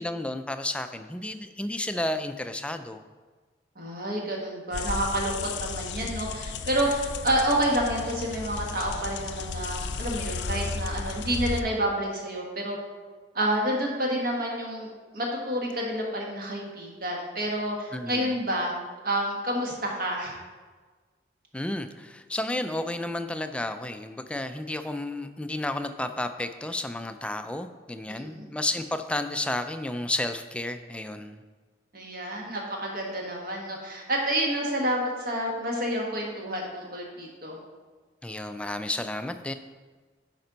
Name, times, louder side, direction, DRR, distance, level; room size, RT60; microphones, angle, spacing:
voice 1, 0.0-3.0 17.9-18.3 21.5-31.4 38.2-39.5, left 1 dB, 5° left, 8 dB, 0.3 m, -32 dB
voice 2, 3.7-12.8 13.3-18.7 19.0-20.3 28.1-28.4 31.9-37.6, right 1 dB, 55° right, -1 dB, 1.5 m, -29 dB
sound 1, 4.7-11.6, left 4 dB, 70° left, 0.4 m, -34 dB
8.6 x 5.3 x 3.9 m, 1.4 s
head